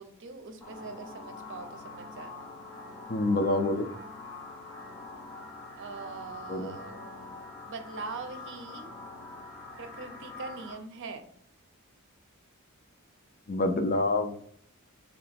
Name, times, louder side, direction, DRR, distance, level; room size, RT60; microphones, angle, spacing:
voice 1, 0.0-2.5 5.8-8.9 9.8-11.3, right 4 dB, 60° right, 7 dB, 0.6 m, -42 dB
sound 1, 0.6-10.7, left 3 dB, 10° left, 1.0 m, -45 dB
voice 2, 3.1-3.9 6.5-6.7 13.5-14.4, left 2 dB, 40° left, 7 dB, 0.5 m, -27 dB
3.2 x 3.0 x 4.2 m, 0.62 s
head